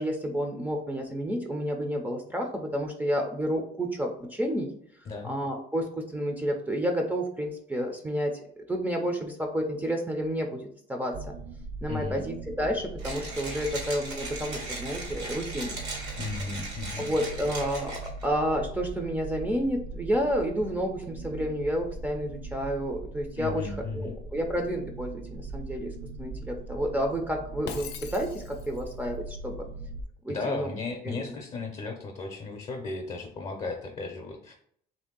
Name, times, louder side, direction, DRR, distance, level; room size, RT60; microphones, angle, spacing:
voice 1, 0.0-4.7 5.2-11.3 11.8-15.8 17.0-29.7 30.2-30.7 31.0-31.3, equal, 10° right, 2 dB, 0.5 m, -30 dB
sound 1, 11.1-30.0, right 3 dB, 65° right, 0.4 m, -41 dB
voice 2, 11.9-12.2 16.2-17.1 23.4-24.1 30.3-34.5, left 3 dB, 35° left, 1 dB, 0.6 m, -35 dB
Mechanisms, 13.0-18.2, right 2 dB, 85° right, 1.5 m, -38 dB
Shatter, 27.7-28.9, left 7 dB, 90° left, 0.5 m, -41 dB
3.1 x 2.7 x 3.7 m, 0.65 s
cardioid pair, 110°, 17 cm